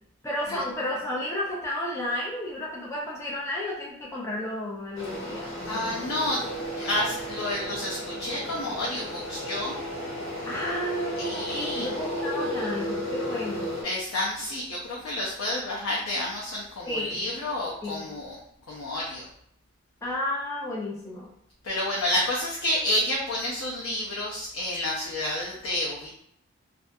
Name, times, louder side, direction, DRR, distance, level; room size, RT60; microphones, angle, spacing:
voice 1, 0.2-6.0 10.5-13.7 16.9-17.3 17.8-18.1 20.0-21.3, left 1 dB, 15° left, -5 dB, 0.4 m, -32 dB
sound 1, 4.9-13.8, equal, 75° left, 1.3 m, -34 dB
voice 2, 5.6-6.4 6.8-9.7 11.2-11.9 13.8-18.4 18.7-19.2 21.6-26.1, left 1 dB, 90° left, -4 dB, 0.5 m, -30 dB
2.3 x 2.3 x 2.6 m, 0.72 s
head